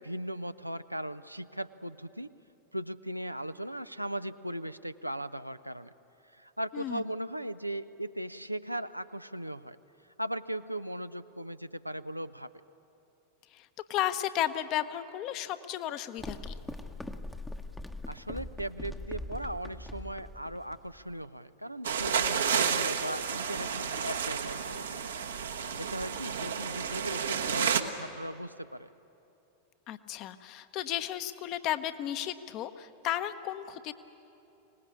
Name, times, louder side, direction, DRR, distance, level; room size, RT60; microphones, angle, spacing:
voice 1, 0.0-2.3 2.7-5.9 6.3-9.8 10.2-12.5 18.1-25.3 25.8-28.9, right 1 dB, 90° right, 12 dB, 0.5 m, -38 dB
voice 2, 13.5-16.5 29.9-33.9, left 12 dB, 40° left, 11 dB, 0.9 m, -34 dB
sound 1, 16.2-21.2, left 1 dB, 5° left, 0.9 m, -41 dB
sound 2, 21.8-27.8, right 7 dB, 70° right, 1.1 m, -31 dB
24.5 x 19.0 x 8.6 m, 2.9 s
figure-of-eight pair, 90°, 0 cm